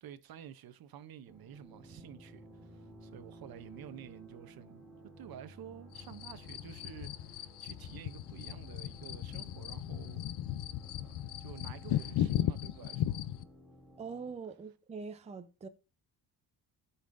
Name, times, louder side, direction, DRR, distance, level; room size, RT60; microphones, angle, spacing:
voice 1, 0.0-4.9 5.2-10.3 10.8-13.3, right 10 dB, 60° right, 0.7 m, -51 dB
sound 1, 1.3-14.3, equal, 5° left, 2.5 m, -55 dB
sound 2, 5.9-13.4, left 12 dB, 70° left, 0.6 m, -36 dB
voice 2, 14.0-15.7, right 5 dB, 15° right, 0.5 m, -43 dB
16.5 x 5.6 x 2.5 m
wide cardioid pair, 170°, 41 cm